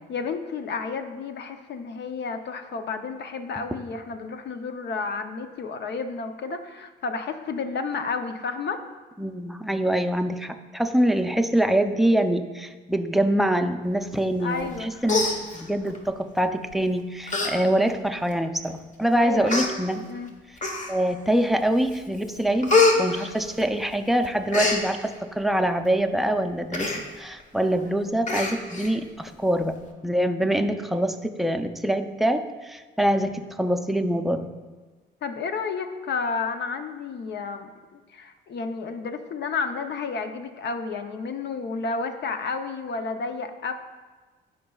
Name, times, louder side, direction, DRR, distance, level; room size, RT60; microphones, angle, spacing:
voice 1, 0.1-8.8 14.4-15.1 19.2-19.6 20.0-20.3 35.2-43.7, left 4 dB, 60° left, 7 dB, 0.7 m, -31 dB
voice 2, 9.2-20.0 20.9-34.5, right 1 dB, ahead, 6 dB, 0.5 m, -25 dB
Human voice, 14.6-14.8 15.1-16.0 16.7-16.9 17.3-17.5 17.9-18.0 18.8-18.9 19.5-19.7 20.6-21.1 21.6-22.0 22.3-24.0 24.2-24.8 26.7-27.0 27.4-27.5 27.8-27.9 28.3-28.9 29.3-29.4, left 3 dB, 40° left, 1.1 m, -24 dB
14.5 x 5.3 x 2.4 m, 1.3 s
cardioid pair, 90°, 20 cm